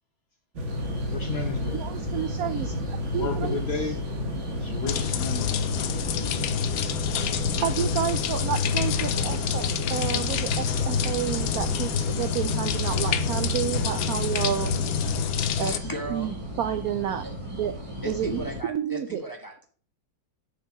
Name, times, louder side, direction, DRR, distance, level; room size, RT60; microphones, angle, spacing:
sound 1, 0.5-15.2, equal, 45° right, 1.5 m, -33 dB
sound 2, 0.7-18.6, equal, 15° right, 1.5 m, -37 dB
voice 1, 1.1-1.8 3.1-4.0 4.5-5.7, left 4 dB, 40° left, 4 dB, 1.0 m, -32 dB
voice 2, 1.7-4.0 7.5-14.8 15.6-15.7 16.1-17.3 17.6-17.7 18.0-19.2, right 10 dB, 75° right, 9 dB, 0.8 m, -30 dB
sound 3, 4.9-15.8, left 9 dB, 65° left, 0.9 m, -28 dB
voice 3, 15.6-16.3 17.2-17.3 18.0-19.7, equal, 15° left, 2 dB, 0.8 m, -36 dB
6.8 x 4.7 x 5.9 m, 0.43 s
omnidirectional pair, 2.0 m